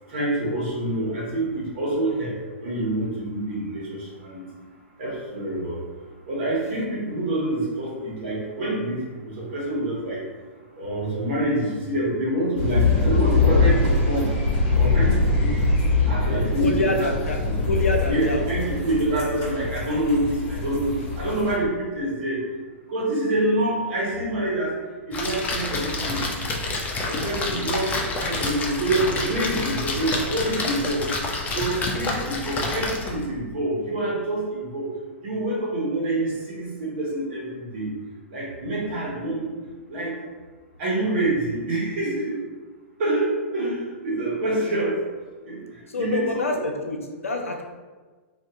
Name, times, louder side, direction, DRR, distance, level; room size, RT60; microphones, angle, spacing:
voice 1, 0.1-4.4 5.0-5.8 6.3-10.2 10.7-14.3 14.7-15.6 16.1-17.1 17.4-17.5 18.1-22.4 22.9-24.7 25.1-26.3 27.1-31.0 31.5-34.9 35.2-37.9 38.3-39.5 39.9-40.2 40.8-42.4 43.0-45.0 45.5-45.6 45.9-46.5, right 1 dB, 60° right, -5 dB, 1.4 m, -26 dB
sound 1, 12.6-21.6, left 3 dB, 40° left, 1.0 m, -23 dB
voice 2, 16.6-17.4 17.7-18.5 45.9-47.6, left 2 dB, 85° left, 3 dB, 0.5 m, -26 dB
Splash splatter, 25.1-33.3, left 2 dB, 20° left, 0.5 m, -28 dB
2.7 x 2.6 x 3.6 m, 1.4 s
hypercardioid pair, 110°, 7 cm